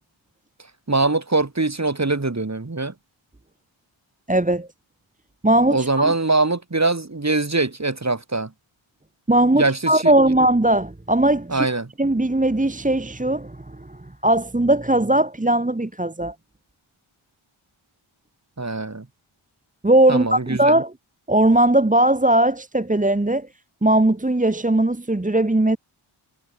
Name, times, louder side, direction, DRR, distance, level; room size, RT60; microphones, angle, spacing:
voice 1, 0.9-2.9 5.7-8.5 9.5-10.1 11.5-11.9 18.6-19.1 20.1-20.8, right 3 dB, 30° right, 3.9 m, -22 dB
voice 2, 4.3-4.7 5.4-6.1 9.3-11.7 12.0-16.3 19.8-20.9 21.3-23.5 23.8-25.8, right 1 dB, 15° right, 1.6 m, -19 dB
wide cardioid pair, 65°, 50 cm